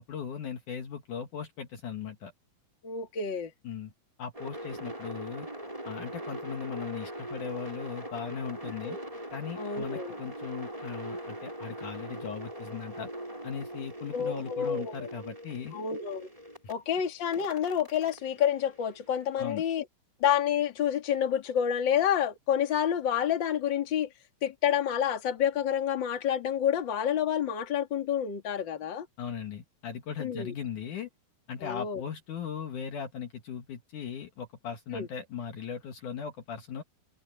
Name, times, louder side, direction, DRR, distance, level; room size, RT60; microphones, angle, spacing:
voice 1, 0.0-2.3 3.6-3.9 4.2-5.5 5.8-9.0 9.3-13.1 13.4-15.8 19.4-19.6 29.2-31.1 31.5-36.8, left 7 dB, 60° left, 2.9 m, -38 dB
voice 2, 2.8-3.5 8.8-9.0 9.6-10.2 14.1-14.9 15.7-16.3 16.7-19.8 20.2-24.1 24.4-29.1 30.2-30.5 31.6-32.0 34.9-35.1, left 9 dB, 35° left, 2.6 m, -28 dB
sound 1, 4.3-16.7 17.3-19.5, right 1 dB, 10° right, 5.2 m, -41 dB
omnidirectional pair, 4.4 m